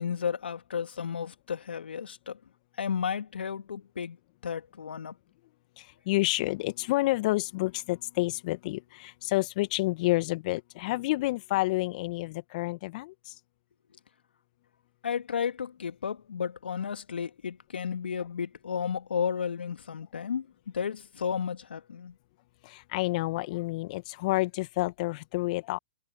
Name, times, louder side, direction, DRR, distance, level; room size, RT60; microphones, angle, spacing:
voice 1, 0.0-2.4 2.8-4.2 4.4-5.1 15.0-20.5 20.7-22.2, left 7 dB, 70° left, 2.5 m, -33 dB
voice 2, 5.8-13.4 22.6-25.8, left 20 dB, 45° left, 2.2 m, -29 dB
figure-of-eight pair, 120°, 6 cm